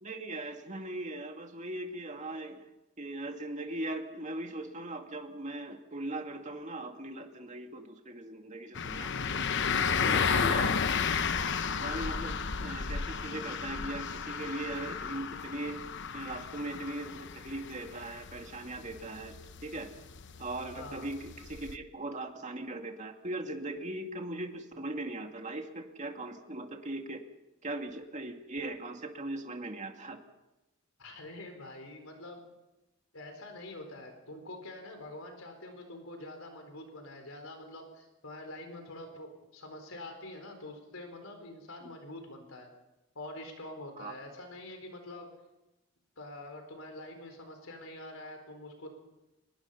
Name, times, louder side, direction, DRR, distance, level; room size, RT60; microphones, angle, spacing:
voice 1, 0.0-2.6 3.0-9.5 10.0-10.8 11.7-12.3 12.6-15.8 16.1-19.3 19.6-19.9 20.4-27.2 27.6-30.2 44.0-44.1, right 2 dB, 35° right, 4 dB, 2.3 m, -39 dB
sound 1, 8.8-21.8, left 6 dB, 60° left, 0.9 m, -33 dB
voice 2, 20.8-21.1 31.0-32.4 33.1-42.7 43.1-45.3 46.2-48.9, left 1 dB, 75° left, 5 dB, 4.3 m, -45 dB
24.5 x 21.0 x 5.7 m, 0.99 s
head